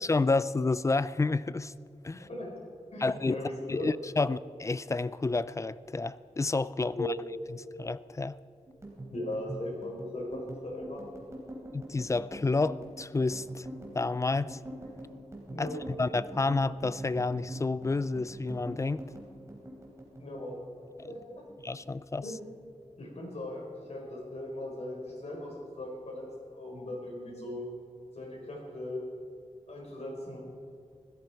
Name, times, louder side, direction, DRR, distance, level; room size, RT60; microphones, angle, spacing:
voice 1, 0.0-1.7 2.0-2.3 3.0-3.4 3.7-7.1 7.8-8.4 11.7-13.7 13.9-14.6 15.6-19.0 21.6-22.2, left 3 dB, 25° left, 0.3 m, -30 dB
voice 2, 2.2-3.9 6.9-7.2 9.1-11.0 15.5-15.8 20.2-20.6 21.0-21.2 22.2-22.4 23.0-27.7 28.1-29.0 29.7-30.4, left 1 dB, 65° left, 4.3 m, -38 dB
sound 1, 8.7-21.2 21.5-22.5 22.8-23.2 23.5-24.2, right 1 dB, 25° right, 3.5 m, -44 dB
16.5 x 13.5 x 4.6 m
wide cardioid pair, 100°, 12 cm